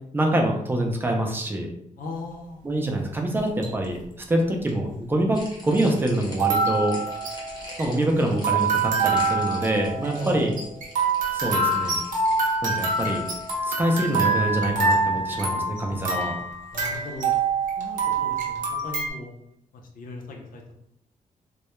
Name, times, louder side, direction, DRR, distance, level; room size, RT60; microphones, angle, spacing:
voice 1, 0.1-1.7 2.6-4.0 4.3-7.0 7.8-10.5 11.3-12.0 12.6-13.2 13.6-16.3, right 1 dB, 15° right, 2 dB, 0.3 m, -25 dB
voice 2, 2.0-2.6 10.2-10.5 16.7-17.3 17.8-19.3 19.7-20.7, left 2 dB, 80° left, 2 dB, 0.5 m, -38 dB
sound 1, 3.4-3.9 4.7-4.8 6.3-19.1, right 3 dB, 70° right, 0.6 m, -26 dB
sound 2, 5.3-13.5, left 1 dB, 30° left, 0.6 m, -44 dB
2.2 x 2.0 x 2.9 m, 0.76 s
wide cardioid pair, 160°, 14 cm